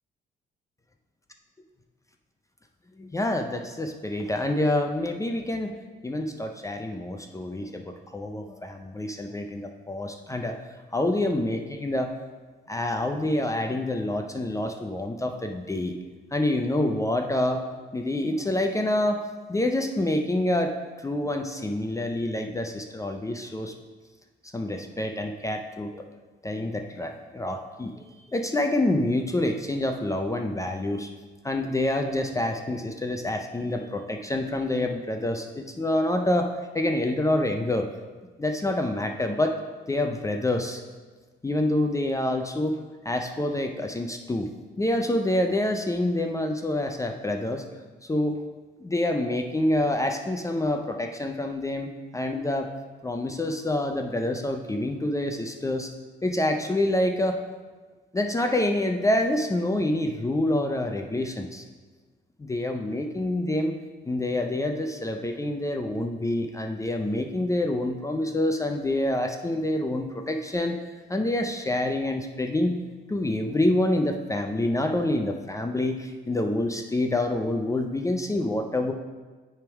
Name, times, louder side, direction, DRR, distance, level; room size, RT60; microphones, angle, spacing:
voice 1, 3.0-10.6 10.9-12.2 12.7-15.9 16.3-17.6 17.9-19.2 19.5-23.7 24.5-26.1 26.4-28.0 28.3-31.1 31.4-37.9 38.4-39.6 39.9-40.8 41.4-42.8 43.0-44.5 44.8-47.6 48.0-48.4 48.8-52.7 53.0-55.9 56.2-57.4 58.1-61.6 62.4-63.8 64.0-70.8 71.1-72.8 73.1-78.9, left 1 dB, 15° left, 4 dB, 0.5 m, -27 dB
9.0 x 3.5 x 4.6 m, 1.3 s
cardioid pair, 90°, 20 cm